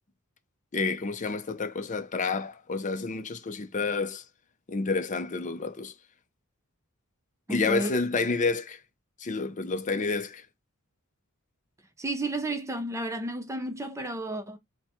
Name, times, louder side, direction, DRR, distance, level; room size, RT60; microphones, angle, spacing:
voice 1, 0.7-4.2 4.7-5.9 7.5-8.8 9.2-10.5, left 4 dB, 35° left, 0.5 m, -29 dB
voice 2, 7.5-7.9 12.0-14.6, right 1 dB, 15° right, 0.5 m, -32 dB
4.5 x 2.2 x 4.3 m
head